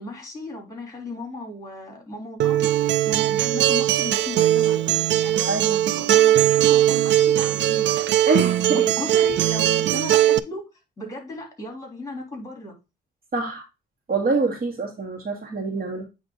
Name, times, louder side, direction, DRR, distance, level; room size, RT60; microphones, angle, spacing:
voice 1, 0.0-8.1 8.7-10.7 11.0-12.8, left 1 dB, 15° left, 3.5 m, -35 dB
Acoustic guitar, 2.4-10.4, right 12 dB, 65° right, 0.4 m, -20 dB
voice 2, 5.5-5.8 8.3-8.8 13.3-13.6 14.1-16.0, right 3 dB, 50° right, 2.3 m, -25 dB
8.6 x 3.5 x 3.9 m
cardioid pair, 90°, 20 cm